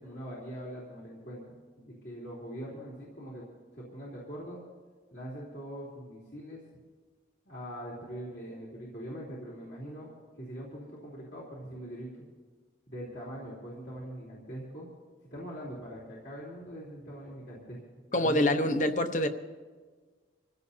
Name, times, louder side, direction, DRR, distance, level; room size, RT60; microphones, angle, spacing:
voice 1, 0.0-3.4 3.8-4.6 5.1-6.6 7.5-10.1 10.4-12.1 12.9-14.9 15.3-17.8 18.1-18.6, equal, 65° left, -6 dB, 3.4 m, -42 dB
voice 2, 18.1-19.3, left 1 dB, 45° left, 8 dB, 0.9 m, -25 dB
26.0 x 16.0 x 2.8 m, 1.5 s
head